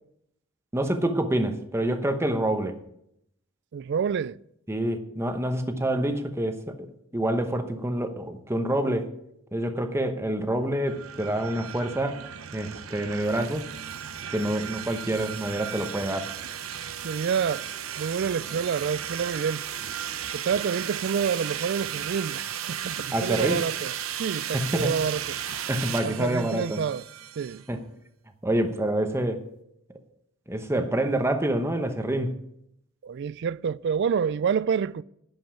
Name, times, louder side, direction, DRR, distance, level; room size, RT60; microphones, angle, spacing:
voice 1, 0.7-2.8 4.7-6.9 7.1-9.1 9.5-12.2 12.5-13.7 14.3-16.3 23.1-23.6 24.5-24.9 25.7-26.8 27.7-27.8 28.4-29.4 30.5-32.4, right 1 dB, 15° right, 1.0 m, -27 dB
voice 2, 3.7-4.4 5.6-5.8 17.0-17.7 18.0-19.7 20.3-23.9 24.2-25.2 26.0-27.0 27.4-27.6 33.0-35.0, right 7 dB, 55° right, 0.3 m, -28 dB
sound 1, 10.9-27.6, right 9 dB, 75° right, 0.7 m, -35 dB
11.5 x 5.4 x 8.8 m
head